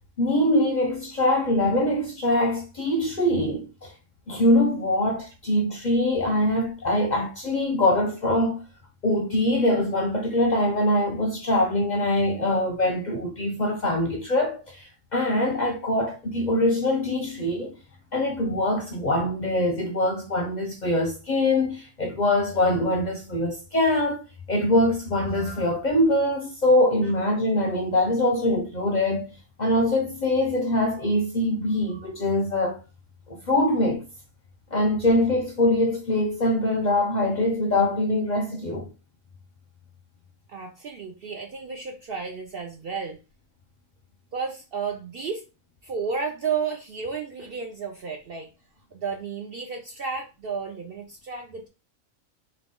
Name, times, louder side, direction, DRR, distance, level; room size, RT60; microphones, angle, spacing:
voice 1, 0.2-3.9 4.3-8.6 9.0-17.8 18.1-24.2 24.5-32.8 33.3-34.0 34.7-38.9, left 1 dB, 50° left, 0.6 m, -23 dB
voice 2, 40.5-43.2 44.3-45.5 45.8-48.5 48.9-51.7, right 5 dB, 65° right, 0.6 m, -32 dB
3.7 x 2.3 x 3.6 m
omnidirectional pair, 1.4 m